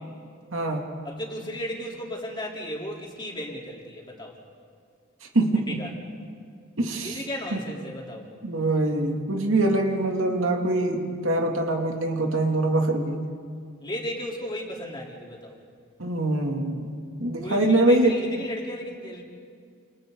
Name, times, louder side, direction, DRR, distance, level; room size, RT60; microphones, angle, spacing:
voice 1, 0.5-0.9 5.3-5.8 6.8-7.2 7.5-7.6 8.4-13.2 16.0-18.1 18.4-18.5, right 2 dB, 70° right, 1 dB, 2.7 m, -24 dB
voice 2, 1.0-4.4 5.7-5.9 7.0-8.3 13.8-15.6 17.4-19.2, equal, 20° left, -2 dB, 3.7 m, -35 dB
29.5 x 28.5 x 4.0 m, 2.1 s
head